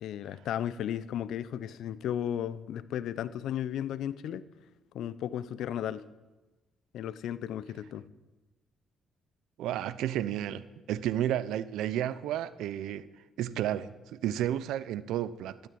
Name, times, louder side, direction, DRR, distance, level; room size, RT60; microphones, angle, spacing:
voice 1, 0.0-4.4 4.9-6.0 6.9-8.1, left 10 dB, 80° left, 0.7 m, -34 dB
voice 2, 9.6-13.1 13.4-15.7, right 11 dB, 85° right, 0.7 m, -32 dB
12.5 x 12.0 x 8.6 m
cardioid pair, 90°, 0 cm